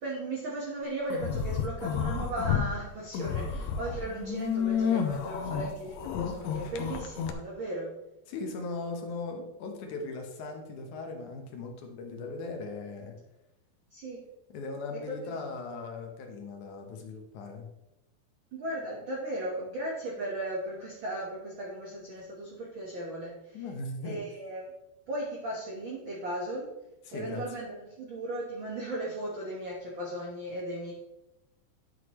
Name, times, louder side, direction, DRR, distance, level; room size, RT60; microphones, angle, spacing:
voice 1, 0.0-7.9 13.9-14.2 14.9-15.4 18.5-23.6 24.0-24.7 25.1-26.7 27.1-30.9, right 1 dB, 80° right, -3 dB, 1.1 m, -36 dB
sound 1, 1.1-2.7 3.1-7.3, left 7 dB, 90° left, 2.7 m, -31 dB
voice 2, 8.3-13.1 14.5-17.7 23.5-24.2 27.1-27.4, left 3 dB, 65° left, 3 dB, 2.2 m, -38 dB
9.9 x 7.8 x 3.1 m, 0.92 s
omnidirectional pair, 4.4 m